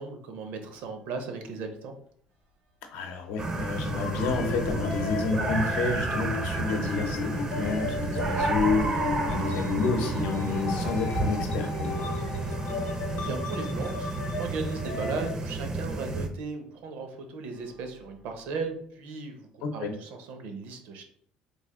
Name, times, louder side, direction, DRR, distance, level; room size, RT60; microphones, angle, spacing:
voice 1, 0.0-1.9 12.8-14.1 14.4-21.0, right 4 dB, 65° right, 6 dB, 0.7 m, -36 dB
sound 1, 0.8-0.9 1.2-1.4 1.6-11.1 11.8-13.2 13.9-14.0 14.2-14.3 16.0-16.1 16.7-17.0 17.4-18.7, left 2 dB, 85° right, 1.2 m, -45 dB
voice 2, 2.9-12.1 19.6-19.9, left 4 dB, 90° left, 4 dB, 0.7 m, -30 dB
sound 2, 3.4-16.3, right 3 dB, 25° right, 0.4 m, -31 dB
sound 3, 3.9-15.3, left 4 dB, 45° left, 0.5 m, -35 dB
3.3 x 2.5 x 3.6 m, 0.63 s
cardioid pair, 150°, 3 cm